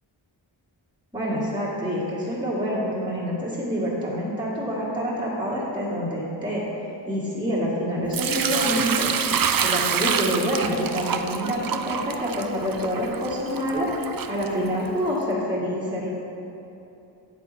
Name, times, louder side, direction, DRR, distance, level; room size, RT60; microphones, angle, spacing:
voice 1, 1.1-6.6 7.1-9.1 9.6-16.1, equal, 10° right, -7 dB, 1.8 m, -27 dB
Sink (filling or washing) / Liquid, 8.1-15.1, right 7 dB, 50° right, 0.4 m, -27 dB
8.5 x 7.6 x 3.4 m, 2.9 s
wide cardioid pair, 55°, 48 cm